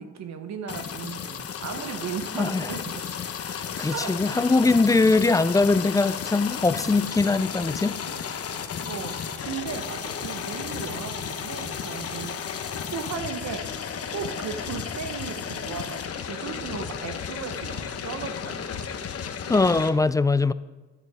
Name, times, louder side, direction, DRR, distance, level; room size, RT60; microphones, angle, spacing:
voice 1, 0.0-3.0 3.9-4.5 8.1-8.2 8.9-12.6 12.9-13.8 14.1-18.7, right 6 dB, 60° right, 1.0 m, -36 dB
sound 1, 0.7-19.9, left 7 dB, 50° left, 1.0 m, -33 dB
voice 2, 2.4-2.7 3.5-8.0 8.5-8.7 19.5-20.5, left 3 dB, 10° left, 0.3 m, -22 dB
11.0 x 9.0 x 4.8 m
cardioid pair, 90°, 30 cm